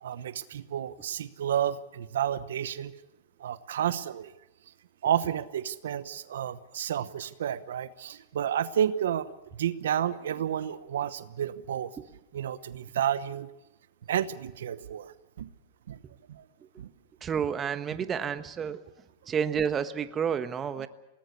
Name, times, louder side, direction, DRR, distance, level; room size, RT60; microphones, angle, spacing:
voice 1, 0.0-2.9 3.4-4.3 5.0-11.9 12.3-13.5 14.1-15.1 15.4-15.5 15.9-16.0 16.3-16.4 16.8-16.9 20.8-20.9, right 10 dB, 80° right, 14 dB, 1.0 m, -31 dB
voice 2, 17.2-18.8 19.3-20.9, right 7 dB, 25° right, 11 dB, 1.3 m, -30 dB
20.5 x 19.0 x 8.4 m, 0.91 s
hypercardioid pair, 125°, 0 cm